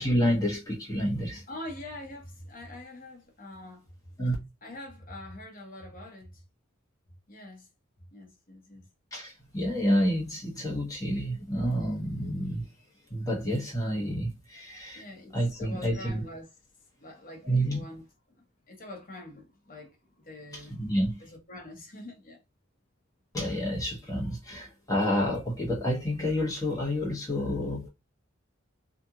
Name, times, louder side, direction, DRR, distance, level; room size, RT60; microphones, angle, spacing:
voice 1, 0.0-1.4 4.2-4.3 9.1-12.7 13.1-15.0 15.3-16.2 17.4-17.8 20.5-21.2 23.3-27.9, equal, 15° left, 1.1 m, -29 dB
voice 2, 1.5-3.8 4.6-6.4 7.3-7.7 8.1-8.9 14.9-16.5 17.0-18.0 18.7-20.8 21.5-22.4, left 1 dB, 40° left, 0.9 m, -44 dB
2.8 x 2.5 x 2.3 m
head